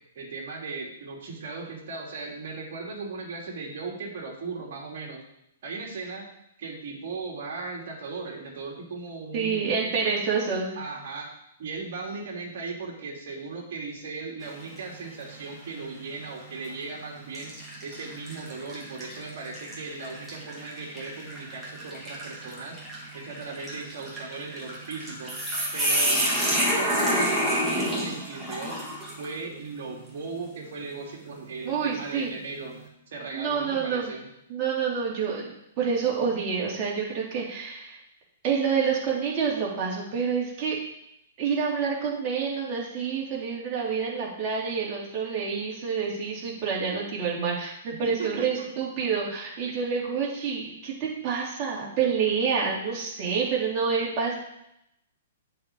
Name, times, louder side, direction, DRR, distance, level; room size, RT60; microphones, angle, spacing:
voice 1, 0.1-5.2 5.6-6.3 6.6-9.7 10.7-11.3 11.6-17.5 17.8-22.8 23.1-25.4 25.7-28.8 29.2-32.8 33.1-34.3 48.0-48.7, right 4 dB, 55° right, -2 dB, 2.9 m, -37 dB
voice 2, 9.3-10.8 31.6-32.3 33.3-34.1 34.5-38.0 38.4-40.8 41.4-54.3, right 6 dB, 35° right, -4 dB, 3.5 m, -28 dB
sound 1, 14.4-14.9 15.4-15.5 16.5-16.7 17.3-29.4, equal, 10° right, 3.0 m, -29 dB
7.7 x 5.2 x 7.5 m, 0.80 s
figure-of-eight pair, 115°, 0 cm